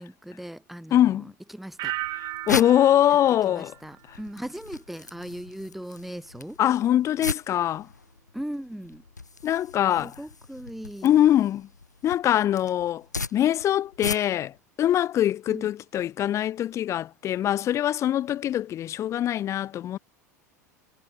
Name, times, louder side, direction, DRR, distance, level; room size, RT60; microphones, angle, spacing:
voice 1, 0.0-2.0 3.4-6.6 8.3-9.0 10.0-11.1 15.5-15.7, equal, ahead, 1.5 m, -38 dB
voice 2, 0.9-1.3 2.5-3.7 6.6-7.9 9.4-10.1 11.0-11.7 12.0-13.0 13.3-14.5 14.8-20.0, left 11 dB, 35° left, 0.4 m, -23 dB
sound 1, 1.8-14.6, left 4 dB, 90° left, 1.4 m, -38 dB
sound 2, 1.8-4.6 4.9-5.4, right 19 dB, 45° right, 1.6 m, -37 dB
figure-of-eight pair, 80°, 9 cm